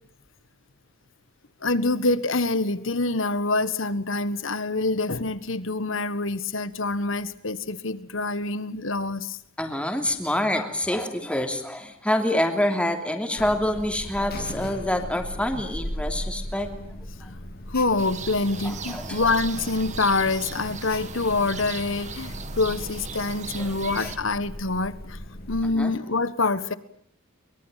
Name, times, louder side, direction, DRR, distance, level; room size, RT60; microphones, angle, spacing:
voice 1, 1.6-9.4 17.7-25.2 25.5-26.7, left 3 dB, 65° left, 14 dB, 1.5 m, -26 dB
voice 2, 9.6-16.7 18.6-19.2 23.6-23.7 24.0-24.1 25.6-25.9, left 1 dB, 5° left, 5 dB, 3.1 m, -26 dB
Alarm, 13.4-25.7, left 1 dB, 45° left, 2.4 m, -38 dB
sound 1, 18.0-24.2, right 5 dB, 35° right, 1.8 m, -38 dB
23.5 x 23.0 x 9.2 m, 0.67 s
head